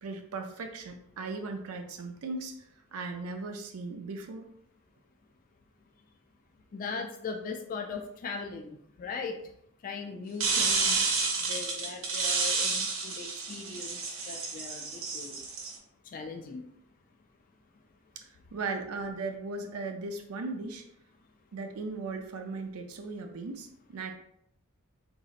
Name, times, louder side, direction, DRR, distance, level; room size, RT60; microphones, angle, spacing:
voice 1, 0.0-4.5 18.2-20.8 21.5-24.1, right 3 dB, 85° right, 5 dB, 0.5 m, -38 dB
voice 2, 6.7-9.4 9.8-10.9 11.4-15.4 16.1-16.6, left 4 dB, 40° left, 4 dB, 0.3 m, -39 dB
sound 1, 10.4-15.7, right 4 dB, 70° right, 0.9 m, -30 dB
3.9 x 2.7 x 2.4 m, 0.73 s
head